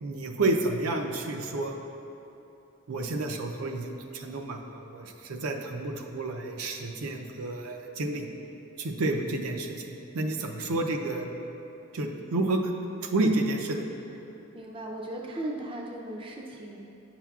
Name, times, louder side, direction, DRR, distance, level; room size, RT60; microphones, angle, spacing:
voice 1, 0.0-1.7 2.9-8.3 8.8-11.3 11.9-12.6 13.0-13.8, right 2 dB, 80° right, 3 dB, 0.5 m, -30 dB
voice 2, 14.5-16.8, right 1 dB, 25° right, 0 dB, 0.4 m, -37 dB
9.1 x 5.8 x 2.3 m, 2.9 s
head